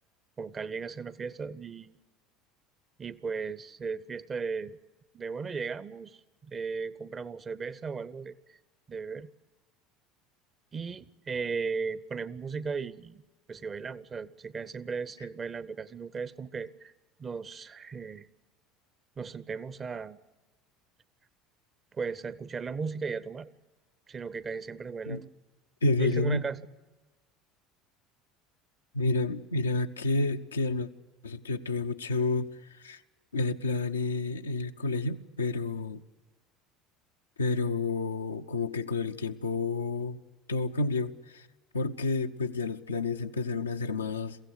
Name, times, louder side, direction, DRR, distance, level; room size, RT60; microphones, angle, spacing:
voice 1, 0.4-1.9 3.0-4.8 5.1-8.6 8.9-9.3 10.7-13.2 13.5-16.9 17.2-18.3 19.2-20.2 21.9-23.5 24.1-25.3 26.0-26.6, right 5 dB, 30° right, 0.8 m, -36 dB
voice 2, 25.8-26.4 28.9-30.9 31.2-32.5 32.8-33.0 33.3-36.0 37.4-40.2 40.5-41.4 41.7-44.4, left 3 dB, 80° left, 0.7 m, -30 dB
22.5 x 16.0 x 9.7 m
figure-of-eight pair, 70°, 0 cm